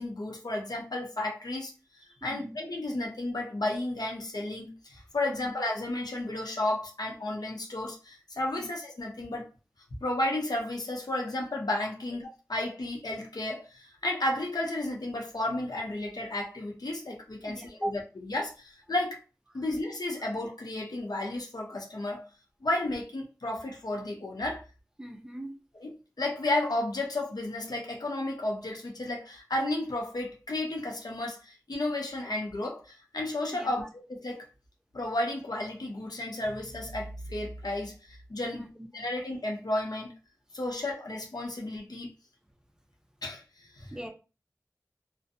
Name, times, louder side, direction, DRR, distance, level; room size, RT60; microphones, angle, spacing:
voice 1, 0.0-1.7 2.2-9.5 10.0-19.2 19.5-22.2 22.6-24.6 25.8-34.4 34.9-40.1 40.5-42.1 43.2-43.4 43.7-44.0, left 1 dB, 80° left, 0.7 m, -33 dB
voice 2, 2.2-2.6 5.3-5.5 8.5-8.7 17.5-18.0 25.0-25.5 33.5-33.8 38.5-38.7 39.0-39.1 43.9-44.1, right 1 dB, 10° right, 0.5 m, -39 dB
2.5 x 2.1 x 2.7 m
wide cardioid pair, 50°, 7 cm